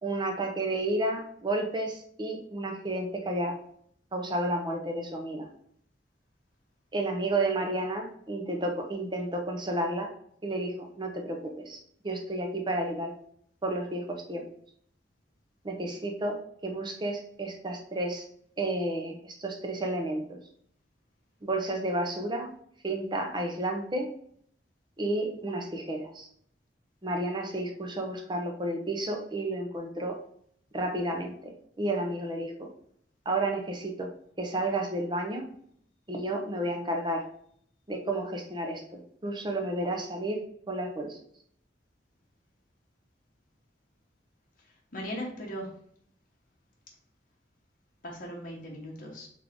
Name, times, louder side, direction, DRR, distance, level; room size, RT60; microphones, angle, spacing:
voice 1, 0.0-3.6 4.1-5.5 6.9-10.1 10.4-13.1 13.6-14.4 15.6-18.2 18.6-20.4 21.4-22.5 22.8-24.1 25.0-26.3 27.0-30.2 30.7-31.4 31.8-32.7 33.3-34.1 34.4-35.5 36.1-37.2 37.9-41.2, right 1 dB, 25° right, 3 dB, 0.7 m, -31 dB
voice 2, 44.9-45.7 48.0-49.3, equal, 50° left, -2 dB, 1.0 m, -38 dB
3.7 x 3.5 x 3.5 m, 0.64 s
head